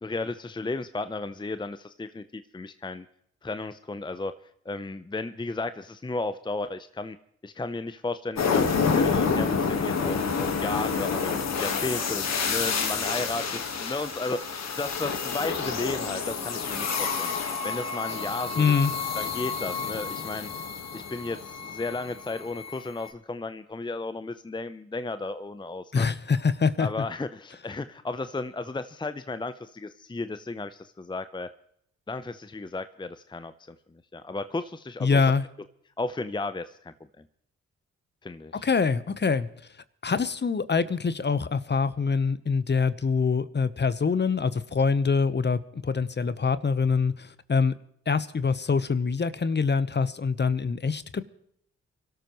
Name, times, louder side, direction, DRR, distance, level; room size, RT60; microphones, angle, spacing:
voice 1, 0.0-3.1 3.4-4.3 4.6-7.2 7.4-11.3 11.6-17.3 17.6-18.7 19.1-20.5 20.9-26.1 26.8-31.5 32.1-35.2 36.0-36.9 38.2-38.7, left 3 dB, 15° left, 12 dB, 0.7 m, -34 dB
sound 1, 8.4-23.1, left 5 dB, 60° left, 1.7 m, -29 dB
voice 2, 18.6-18.9 25.9-26.9 35.0-35.4 38.6-39.5 40.0-47.7 48.1-51.2, left 5 dB, 35° left, 14 dB, 1.0 m, -25 dB
25.0 x 13.0 x 3.1 m, 0.69 s
hypercardioid pair, 40°, 30 cm